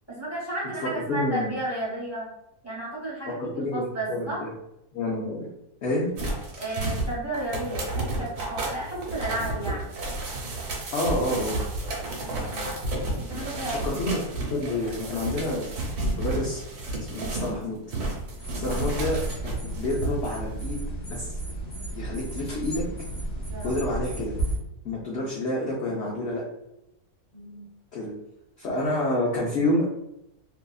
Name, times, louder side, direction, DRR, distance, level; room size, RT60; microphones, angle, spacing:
voice 1, 0.1-2.3 2.6-4.4 6.5-9.9 12.2-12.6 13.1-13.9 18.5-18.8 23.5-23.7 27.3-27.6, right 1 dB, 15° right, -7 dB, 0.7 m, -33 dB
voice 2, 1.1-1.5 3.4-4.5 4.9-5.5 5.8-6.1 10.9-11.6 13.8-14.2 14.5-15.8 16.1-16.6 17.1-17.8 18.5-20.8 21.1-21.4 21.9-22.8 23.6-24.3 24.8-26.4 27.9-28.1 28.6-29.8, left 1 dB, 70° left, -4 dB, 0.6 m, -28 dB
sound 1, 6.2-17.6 17.9-20.3 20.6-20.7, right 2 dB, 75° right, 1.3 m, -31 dB
sound 2, 18.4-24.6, right 2 dB, 55° left, 1.0 m, -33 dB
2.7 x 2.4 x 2.3 m, 0.83 s
omnidirectional pair, 1.7 m